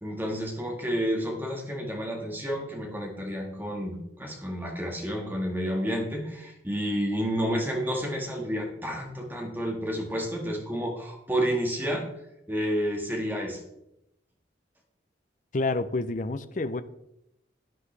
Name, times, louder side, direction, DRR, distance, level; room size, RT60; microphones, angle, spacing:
voice 1, 0.0-12.1 12.5-13.6, equal, 10° right, 1 dB, 1.7 m, -30 dB
voice 2, 15.5-16.8, left 3 dB, 45° left, 12 dB, 0.5 m, -28 dB
10.5 x 9.7 x 3.3 m, 0.84 s
head